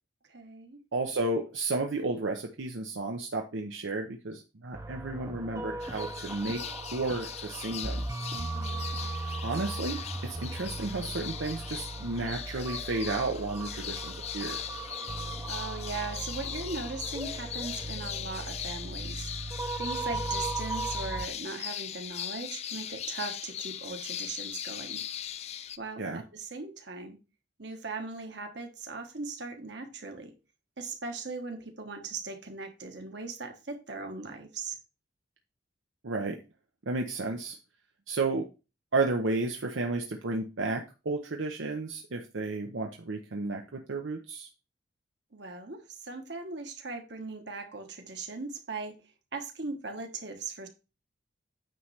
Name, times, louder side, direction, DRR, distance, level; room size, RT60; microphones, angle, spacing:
voice 1, 0.3-0.8 8.3-9.1 15.5-19.3 19.8-25.0 25.8-27.2 27.6-30.3 30.8-34.8 45.3-48.9 49.3-50.7, right 3 dB, 60° right, 4 dB, 1.4 m, -39 dB
voice 2, 0.9-6.6 6.9-8.0 9.4-14.6 26.0-26.2 36.0-36.4 36.9-37.6 38.1-38.5 38.9-44.5, right 3 dB, 80° right, 2 dB, 0.8 m, -32 dB
sound 1, 4.7-21.3, right 2 dB, 15° right, 0.6 m, -37 dB
sound 2, 5.8-25.8, left 10 dB, 35° left, 0.3 m, -40 dB
9.2 x 3.2 x 5.7 m, 0.31 s
head